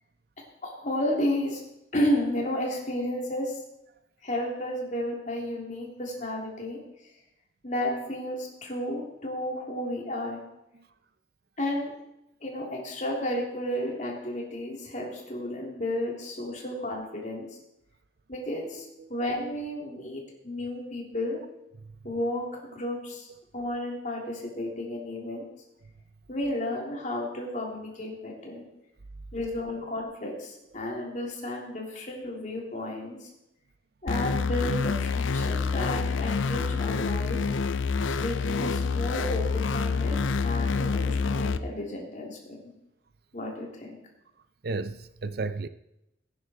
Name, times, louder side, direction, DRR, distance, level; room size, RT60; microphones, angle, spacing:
voice 1, 0.6-1.6 1.9-3.6 4.2-6.8 7.6-10.4 11.6-11.9 12.4-17.5 18.3-21.4 22.0-23.3 23.5-25.4 26.3-28.6 29.3-33.3 34.0-37.4 38.2-42.4 43.3-44.0, left 1 dB, 40° left, 3.2 m, -32 dB
sound 1, 34.1-41.6, left 4 dB, 85° left, 0.6 m, -27 dB
voice 2, 44.6-45.7, right 3 dB, 50° right, 0.5 m, -33 dB
17.5 x 9.7 x 4.5 m
head